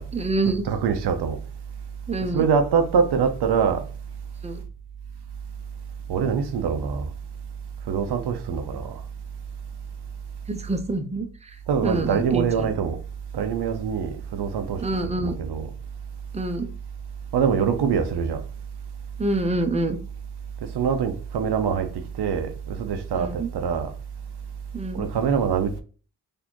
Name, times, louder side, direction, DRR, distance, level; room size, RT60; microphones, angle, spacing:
voice 1, 0.1-0.6 2.1-2.4 4.4-4.6 10.5-11.6 11.8-12.7 14.8-15.3 16.3-16.7 19.2-20.0 23.1-23.5 24.7-25.0, right 2 dB, 15° right, 0.7 m, -26 dB
voice 2, 0.6-1.4 2.3-3.8 6.1-7.1 7.9-9.0 11.7-13.0 13.3-15.7 17.3-18.4 20.6-23.9 24.9-25.8, right 6 dB, 85° right, 0.6 m, -24 dB
4.2 x 2.7 x 2.9 m
cardioid pair, 55°, 39 cm